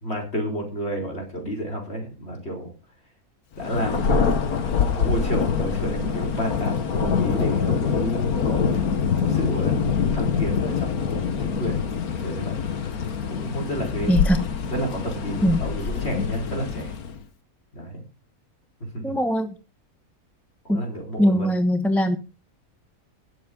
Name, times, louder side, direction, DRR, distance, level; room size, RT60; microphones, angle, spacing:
voice 1, 0.0-2.7 3.5-4.5 4.8-9.8 10.1-11.8 12.2-12.5 13.3-14.1 14.7-16.9 17.7-18.0 18.8-19.2 20.6-21.5, right 1 dB, 45° left, 1 dB, 4.7 m, -31 dB
Thunder, 3.6-17.2, left 6 dB, 85° left, 1.8 m, -25 dB
voice 2, 19.0-19.5 20.7-20.8 21.2-22.2, equal, ahead, 9 dB, 0.8 m, -21 dB
19.5 x 7.8 x 3.8 m, 0.31 s
omnidirectional pair, 1.5 m